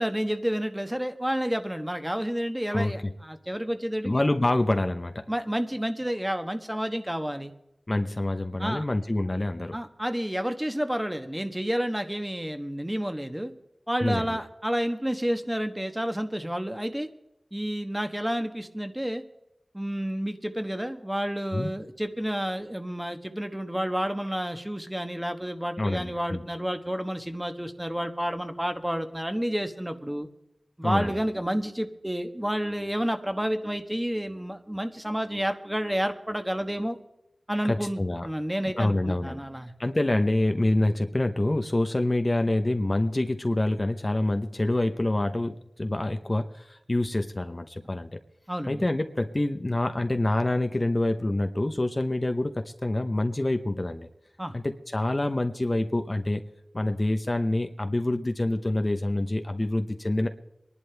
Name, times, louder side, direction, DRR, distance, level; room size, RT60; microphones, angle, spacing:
voice 1, 0.0-4.2 5.3-7.5 8.6-8.8 9.7-13.5 13.9-17.1 17.5-19.2 19.7-30.3 30.8-37.0 37.5-39.7 48.5-48.8 54.4-54.5, equal, 10° right, 7 dB, 1.3 m, -30 dB
voice 2, 2.7-3.1 4.0-5.2 7.9-9.8 14.0-14.4 21.5-21.7 25.8-26.5 30.8-31.1 37.6-38.3 38.6-39.4 39.8-48.2 48.7-54.1 54.5-56.4 56.7-60.3, left 1 dB, 35° left, 7 dB, 0.9 m, -26 dB
23.0 x 11.0 x 3.4 m, 0.88 s
wide cardioid pair, 45°, 0 cm